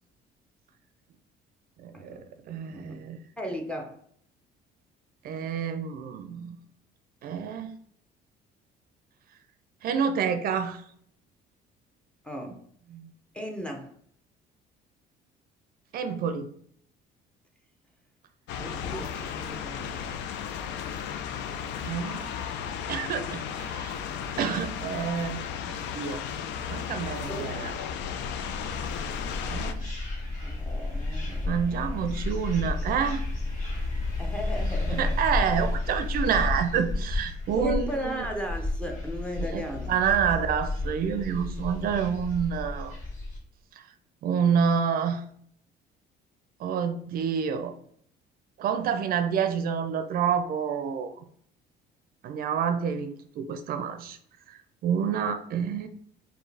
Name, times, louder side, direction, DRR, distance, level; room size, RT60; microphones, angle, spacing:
voice 1, 1.8-3.2 5.2-6.6 7.2-7.7 9.8-10.8 12.9-13.1 15.9-16.5 21.8-22.3 22.9-24.0 24.4-25.4 25.9-26.2 26.7-27.7 29.5-29.9 31.4-33.3 34.9-38.3 39.4-43.0 44.2-45.2 46.6-47.7 48.6-51.1 52.2-54.2 54.5-55.9, right 7 dB, 55° right, 9 dB, 0.5 m, -28 dB
voice 2, 2.7-3.0 3.4-4.0 12.2-12.6 13.3-13.9 18.6-20.0 23.1-23.4 27.3-27.4 29.8-29.9 30.4-31.9 34.2-35.3 37.6-39.9, equal, 5° left, 2 dB, 0.6 m, -36 dB
sound 1, 18.5-29.7, left 8 dB, 80° left, 0.5 m, -34 dB
sound 2, 28.2-43.4, left 2 dB, 45° left, 1.6 m, -32 dB
4.4 x 2.7 x 3.3 m, 0.63 s
cardioid pair, 130°, 18 cm